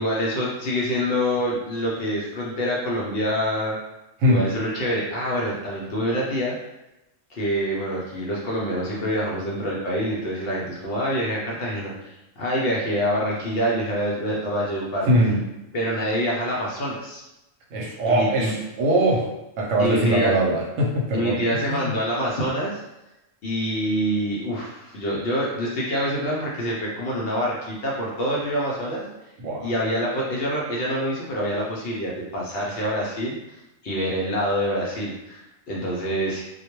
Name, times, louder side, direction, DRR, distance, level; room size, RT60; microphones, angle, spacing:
voice 1, 0.0-3.8 4.3-6.5 7.3-15.1 15.7-17.2 18.0-18.5 19.8-20.4 21.1-22.8 23.4-29.1 29.6-36.4, equal, 60° left, -4 dB, 0.7 m, -26 dB
voice 2, 15.1-15.4 17.7-21.8 29.4-29.7, right 1 dB, 85° right, -2 dB, 1.0 m, -22 dB
2.2 x 2.1 x 2.9 m, 0.93 s
omnidirectional pair, 1.3 m